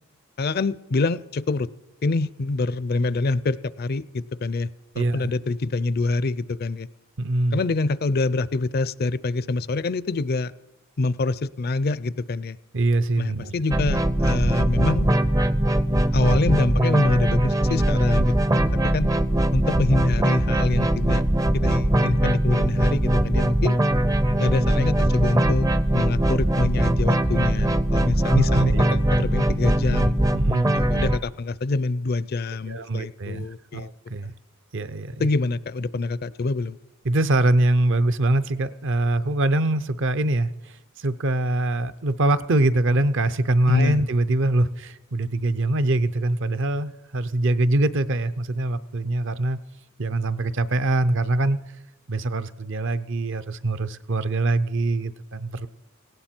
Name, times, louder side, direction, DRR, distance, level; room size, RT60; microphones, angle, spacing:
voice 1, 0.4-1.7 2.0-4.7 5.0-6.9 7.5-10.5 11.0-12.6 13.2-15.1 16.1-19.1 19.5-21.2 21.5-23.8 24.4-30.1 30.7-33.9 35.2-36.8 43.7-44.1, left 3 dB, 45° left, 18 dB, 0.4 m, -26 dB
voice 2, 4.9-5.3 7.2-7.6 12.7-13.5 28.1-29.2 30.3-30.8 32.7-33.5 33.7-34.3 34.7-35.3 37.0-49.6 50.0-51.6 52.1-55.7, right 2 dB, 55° right, 14 dB, 0.6 m, -23 dB
sound 1, 13.7-31.2, right 1 dB, 15° right, 0.4 m, -21 dB
18.5 x 16.5 x 4.4 m, 0.96 s
head